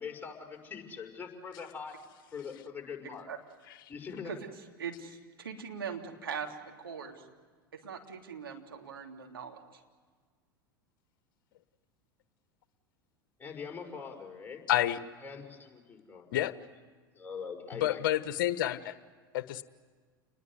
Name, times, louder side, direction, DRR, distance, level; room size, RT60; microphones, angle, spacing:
voice 1, 0.0-2.0 2.3-3.3 3.9-4.4 13.4-14.6 15.2-16.3 17.1-18.0, left 6 dB, 15° left, 1 dB, 5.5 m, -43 dB
voice 2, 4.8-7.2 7.8-9.6, right 6 dB, 80° right, 2 dB, 3.4 m, -41 dB
voice 3, 14.7-15.0 16.3-16.5 17.7-19.0 19.3-19.6, left 13 dB, 65° left, 13 dB, 1.3 m, -29 dB
29.5 x 21.0 x 8.1 m, 1.5 s
figure-of-eight pair, 85°, 12 cm